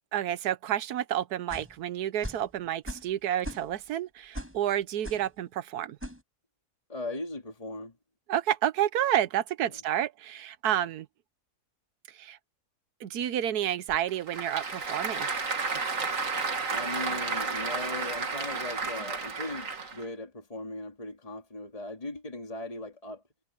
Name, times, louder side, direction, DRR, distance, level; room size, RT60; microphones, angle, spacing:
voice 1, 0.1-6.0 8.3-11.1 12.1-12.4 13.0-15.3, right 11 dB, 80° right, 1.3 m, -30 dB
sound 1, 1.5-1.8 2.2-2.5 2.9-3.1 3.4-3.9 4.3-4.6 5.0-5.3 6.0-6.2, equal, 10° right, 5.1 m, -39 dB
voice 2, 6.9-7.9 16.7-23.2, left 2 dB, 20° left, 2.7 m, -38 dB
Applause / Crowd, 13.9-20.1, right 4 dB, 55° right, 2.5 m, -32 dB
omnidirectional pair, 1.6 m